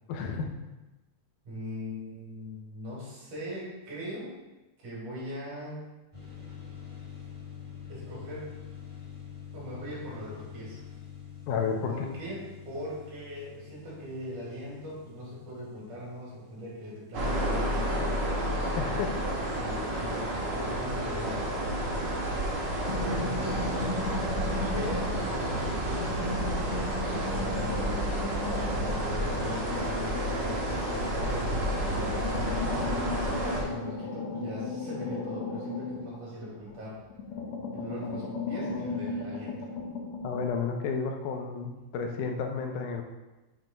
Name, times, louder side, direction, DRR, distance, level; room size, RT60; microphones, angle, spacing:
voice 1, 0.1-0.6 11.5-11.9 18.8-19.2 40.2-43.0, left 5 dB, 80° left, 3 dB, 2.2 m, -31 dB
voice 2, 1.5-4.4 4.8-5.9 7.9-8.5 9.5-10.8 11.9-18.2 19.6-21.4 22.8-24.4 24.7-32.6 33.4-37.0 37.7-39.7, equal, 75° right, -6 dB, 3.8 m, -40 dB
sound 1, 6.1-18.6, left 8 dB, 20° right, 0.8 m, -47 dB
sound 2, 17.1-33.6, right 1 dB, 55° right, 1.3 m, -30 dB
sound 3, 22.9-25.3 25.7-31.3 31.7-36.8 37.1-40.5, left 3 dB, 65° left, 1.5 m, -36 dB
7.5 x 3.3 x 5.1 m, 1.1 s
omnidirectional pair, 3.6 m